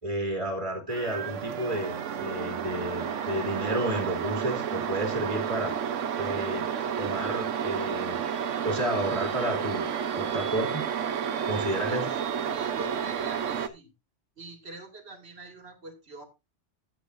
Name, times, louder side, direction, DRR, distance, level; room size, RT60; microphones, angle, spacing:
voice 1, 0.0-5.7 6.2-6.7 7.0-8.2 8.6-9.9 10.1-10.8 11.5-12.1, right 1 dB, 25° right, 1 dB, 3.0 m, -31 dB
sound 1, 0.9-13.7, right 8 dB, 85° right, 1.2 m, -31 dB
voice 2, 11.7-12.0 12.3-13.9 14.4-16.3, right 2 dB, 55° right, 6 dB, 2.3 m, -45 dB
14.5 x 7.9 x 2.6 m, 0.24 s
omnidirectional pair, 1.3 m